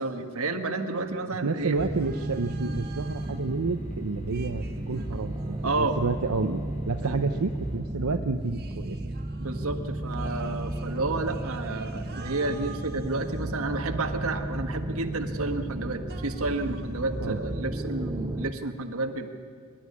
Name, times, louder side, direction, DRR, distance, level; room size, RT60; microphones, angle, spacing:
voice 1, 0.0-1.8 4.9-5.0 5.6-6.0 7.0-7.2 9.4-19.3, right 2 dB, 70° right, 5 dB, 1.6 m, -31 dB
voice 2, 1.4-9.0 17.2-17.4, right 3 dB, 90° right, 5 dB, 0.8 m, -30 dB
sound 1, 1.6-7.8, left 1 dB, 35° left, 3.8 m, -46 dB
sound 2, 1.8-18.5, right 1 dB, 20° right, 0.5 m, -34 dB
sound 3, 1.8-3.6 4.3-6.5 8.5-14.1 16.1-17.6, right 5 dB, 45° right, 1.7 m, -51 dB
24.5 x 12.0 x 9.6 m, 2.2 s
head